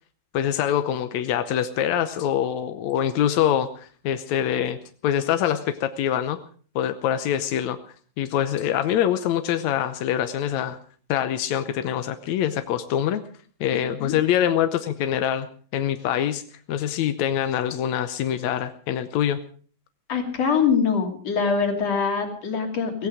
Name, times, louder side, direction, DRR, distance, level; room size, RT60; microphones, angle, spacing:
voice 1, 0.3-6.4 6.8-7.8 8.2-10.8 11.1-13.2 13.6-16.4 16.7-19.4, left 10 dB, 75° left, 9 dB, 1.7 m, -24 dB
voice 2, 20.1-23.1, left 6 dB, 45° left, 4 dB, 3.6 m, -23 dB
17.0 x 17.0 x 4.9 m, 0.44 s
omnidirectional pair, 4.2 m